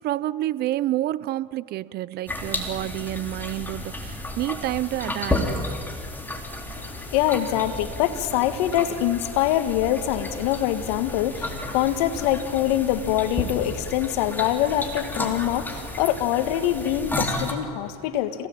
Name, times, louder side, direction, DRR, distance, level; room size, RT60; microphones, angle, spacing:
voice 1, 0.0-5.5, right 14 dB, 55° right, 0.7 m, -29 dB
sound 1, 2.3-17.5, left 2 dB, 10° left, 4.0 m, -32 dB
voice 2, 6.7-18.5, left 12 dB, 75° left, 1.8 m, -24 dB
26.5 x 18.0 x 8.8 m
supercardioid pair, 90°, 20 cm